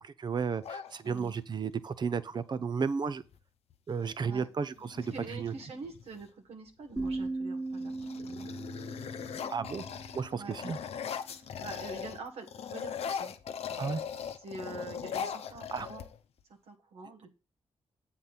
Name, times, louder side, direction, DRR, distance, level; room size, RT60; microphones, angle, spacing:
voice 1, 0.0-3.2 3.9-5.5 9.5-9.8 10.1-10.8 13.8-14.0 15.7-15.9, right 5 dB, 45° right, 0.6 m, -33 dB
sound 1, 0.6-1.6 3.2-3.4 3.7-4.2 4.8-6.3 6.9-7.3 7.7-12.2 12.5-16.4, left 7 dB, 80° left, 0.7 m, -40 dB
voice 2, 1.0-1.3 4.2-4.5 5.0-7.9 8.2-8.5 10.3-10.6 11.3-13.3 13.7-13.9 14.4-16.0 16.6-17.3, right 3 dB, 80° right, 1.6 m, -45 dB
sound 2, 7.0-10.8, right 2 dB, 5° right, 1.1 m, -38 dB
7.9 x 3.9 x 5.8 m
cardioid pair, 75°, 10 cm